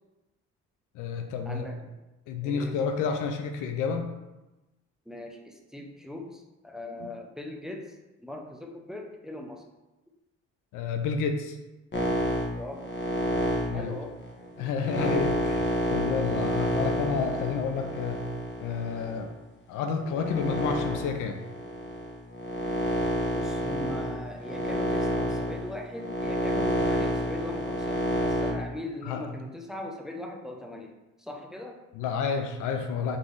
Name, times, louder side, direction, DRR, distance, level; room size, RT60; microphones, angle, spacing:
voice 1, 0.9-1.7 2.3-4.2 7.0-7.1 10.7-11.6 13.7-13.9 14.6-18.2 18.6-19.3 19.7-21.4 29.0-29.3 32.0-33.2, left 5 dB, 90° left, 5 dB, 0.5 m, -30 dB
voice 2, 1.5-1.9 2.4-2.8 5.1-9.6 12.6-12.9 13.7-14.2 23.3-30.9 31.2-31.8, left 1 dB, ahead, 2 dB, 0.5 m, -40 dB
sound 1, 11.9-19.3 19.9-28.5, equal, 35° left, 1.0 m, -29 dB
3.8 x 3.0 x 3.8 m, 1.0 s
cardioid pair, 90°, 30 cm